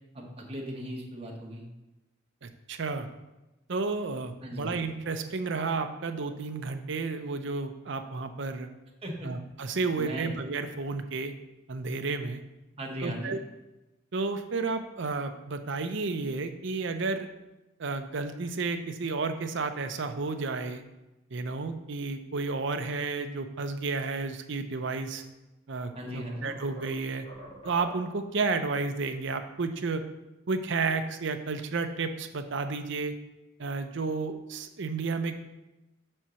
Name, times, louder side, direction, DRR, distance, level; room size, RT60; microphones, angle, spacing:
voice 1, 0.1-1.6 4.4-4.7 9.0-9.3 10.0-10.3 12.8-13.3 25.9-26.5, equal, 30° right, -1 dB, 1.3 m, -37 dB
voice 2, 2.4-3.1 3.7-8.7 9.2-11.3 11.7-12.4 13.0-13.4 14.1-17.3 17.8-20.8 21.3-25.2 25.7-27.3 27.6-30.0 30.5-33.1 33.6-35.3, right 4 dB, 65° right, 7 dB, 0.6 m, -32 dB
sound 1, 25.2-25.3 25.8-28.3, right 1 dB, 30° left, 2.1 m, -47 dB
5.5 x 4.4 x 6.2 m, 1.0 s
head